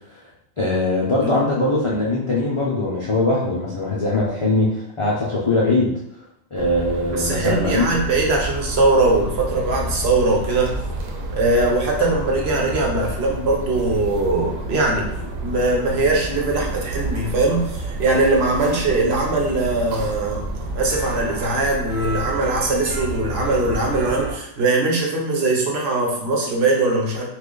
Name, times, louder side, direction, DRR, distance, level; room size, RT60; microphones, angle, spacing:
voice 1, 0.6-5.9 6.5-7.9, left 2 dB, 55° left, -5 dB, 0.3 m, -21 dB
sound 1, 6.5-24.3, right 2 dB, 85° right, 1.1 m, -30 dB
voice 2, 7.1-10.7 11.3-15.1 15.4-27.3, right 2 dB, 60° right, -1 dB, 0.9 m, -21 dB
3.0 x 2.4 x 3.7 m, 0.74 s
omnidirectional pair, 1.3 m